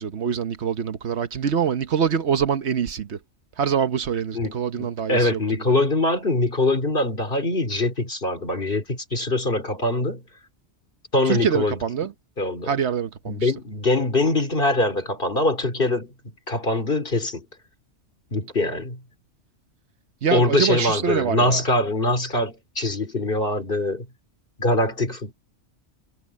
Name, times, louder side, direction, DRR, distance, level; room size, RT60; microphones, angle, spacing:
voice 1, 0.0-3.2 3.6-5.4 11.2-12.1 12.7-13.5 20.2-21.6, right 7 dB, 70° right, 1.2 m, -24 dB
voice 2, 4.3-10.2 11.1-11.8 12.4-12.7 13.3-17.4 18.3-19.0 20.3-24.1 24.6-25.3, left 2 dB, 50° left, 3.1 m, -23 dB
omnidirectional pair, 1.2 m